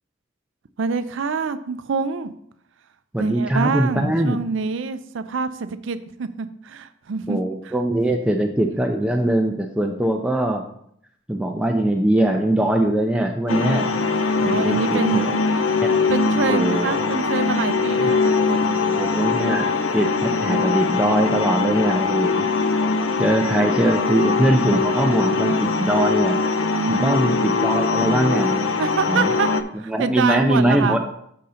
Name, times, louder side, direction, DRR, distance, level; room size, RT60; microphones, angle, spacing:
voice 1, 0.8-2.3 3.2-7.7 14.4-15.3 15.7-15.8 16.1-19.0 26.7-27.5 28.8-29.5 29.7-31.0, right 5 dB, 65° right, 11 dB, 0.5 m, -26 dB
voice 2, 3.1-4.4 7.3-10.6 11.3-13.9 14.4-15.3 15.8-15.9 16.5-17.1 18.0-18.1 18.9-22.5 22.7-22.8 23.2-26.4 26.9-28.6 29.1-29.3 29.7-31.0, right 1 dB, 5° right, 2 dB, 0.4 m, -22 dB
sound 1, 13.5-29.6, left 4 dB, 80° left, 0.5 m, -22 dB
6.7 x 3.7 x 5.6 m, 0.69 s
head